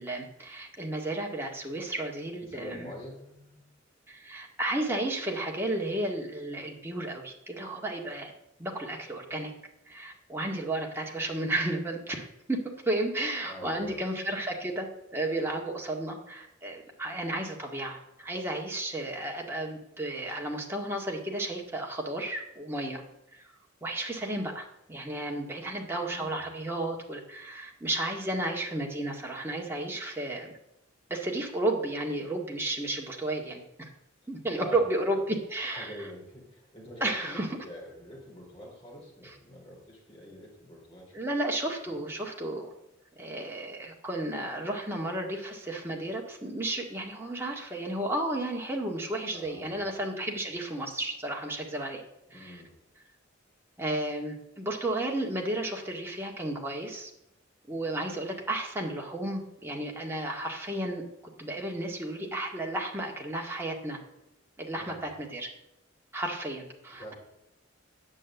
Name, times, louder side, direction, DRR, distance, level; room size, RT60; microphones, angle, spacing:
voice 1, 0.0-2.9 4.1-8.3 8.6-9.5 9.9-12.6 12.9-23.0 23.3-23.4 23.8-30.5 31.1-33.9 34.3-35.9 37.0-37.5 41.1-42.7 43.2-52.0 52.3-52.6 53.8-57.1 57.7-61.0 61.4-64.0 64.6-65.5 66.1-67.1, right 1 dB, 10° right, -1 dB, 1.8 m, -33 dB
voice 2, 2.4-3.7 13.5-14.0 26.1-26.4 34.6-34.9 35.1-35.2 35.5-41.1 41.9-42.1 49.3-49.8 52.3-52.7 64.7-65.1 66.9-67.1, equal, 30° left, -2 dB, 4.4 m, -46 dB
9.7 x 7.7 x 8.0 m, 0.85 s
head